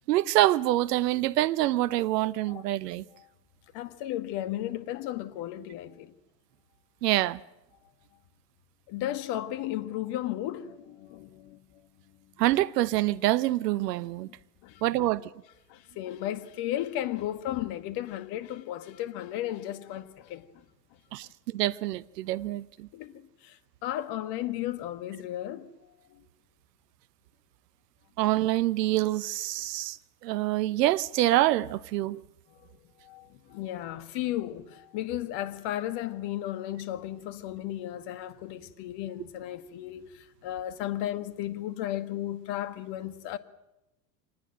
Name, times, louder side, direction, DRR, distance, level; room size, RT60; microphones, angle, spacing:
voice 1, 0.1-3.0 7.0-7.4 12.4-14.3 14.8-15.2 21.1-22.9 28.2-30.0 30.2-32.2, right 15 dB, 70° right, 0.8 m, -26 dB
voice 2, 3.7-6.1 8.9-11.6 14.6-15.1 15.7-20.6 22.9-25.7 26.1-26.3 32.5-32.7 33.0-43.4, left 13 dB, 50° left, 1.8 m, -35 dB
25.5 x 20.0 x 7.8 m
hypercardioid pair, 85°, 50 cm